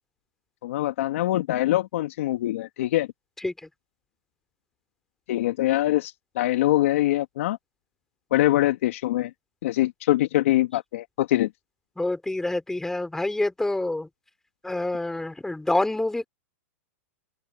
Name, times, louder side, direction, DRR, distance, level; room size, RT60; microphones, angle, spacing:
voice 1, 0.6-3.1 5.3-7.6 8.3-9.3 9.6-11.5, left 15 dB, 65° left, 2.9 m, -23 dB
voice 2, 12.0-14.1 14.6-16.3, left 2 dB, 5° left, 5.0 m, -27 dB
open air
hypercardioid pair, 125°, 8 cm